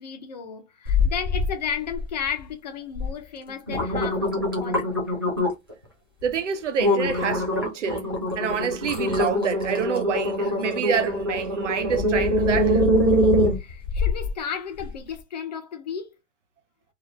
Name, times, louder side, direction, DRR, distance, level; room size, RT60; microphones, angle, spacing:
voice 1, 0.0-5.0 13.6-16.1, left 7 dB, 35° left, 0.6 m, -34 dB
sound 1, 0.8-1.5 1.9-2.4 2.9-3.1 3.5-5.7 6.2-6.4 6.8-14.3 14.8-14.9, left 1 dB, 20° right, 0.3 m, -23 dB
voice 2, 6.2-8.1 8.4-12.9, right 7 dB, 70° right, 0.8 m, -27 dB
2.8 x 2.5 x 3.0 m
hypercardioid pair, 170°, 38 cm